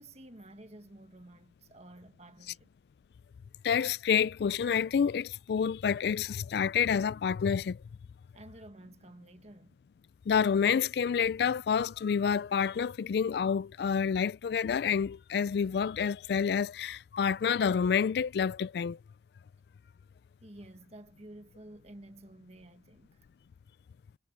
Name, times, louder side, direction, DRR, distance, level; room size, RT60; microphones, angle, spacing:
voice 1, 0.0-2.7 8.3-9.8 20.4-23.3, right 1 dB, 35° right, 1.5 m, -51 dB
voice 2, 3.6-7.8 10.3-19.0, left 7 dB, 60° left, 0.3 m, -28 dB
head